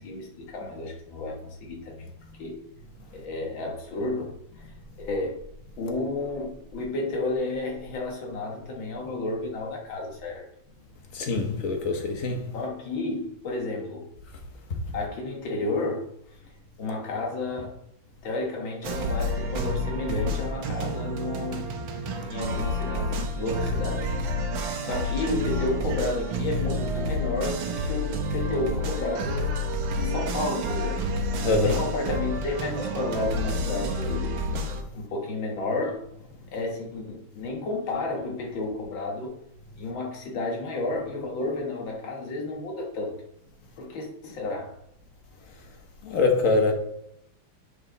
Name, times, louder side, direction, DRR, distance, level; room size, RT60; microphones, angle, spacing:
voice 1, 0.0-2.1 2.4-2.6 3.1-4.3 5.0-5.4 5.8-10.5 12.5-14.1 14.9-16.0 16.8-17.7 18.2-21.7 22.2-24.0 24.8-29.5 30.0-31.0 31.5-34.3 34.9-36.0 36.5-39.3 39.8-43.1 43.8-44.7, left 2 dB, 75° left, 2.0 m, -31 dB
voice 2, 11.1-12.5 14.7-14.8 31.4-31.8 46.0-46.7, left 3 dB, 50° left, 1.2 m, -24 dB
sound 1, 18.8-34.8, equal, 70° right, 1.6 m, -29 dB
8.4 x 4.8 x 3.8 m
omnidirectional pair, 2.2 m